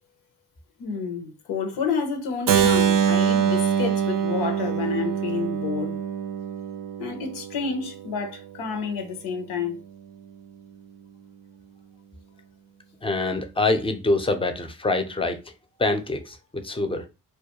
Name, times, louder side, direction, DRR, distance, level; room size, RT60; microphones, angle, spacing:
voice 1, 0.8-6.0 7.0-9.8, left 5 dB, 85° left, 0.6 m, -29 dB
Keyboard (musical), 2.5-8.3, right 8 dB, 60° right, 0.5 m, -24 dB
voice 2, 13.0-15.5 15.8-17.1, left 2 dB, 15° left, 0.5 m, -25 dB
2.2 x 2.2 x 2.8 m
supercardioid pair, 50°, 37 cm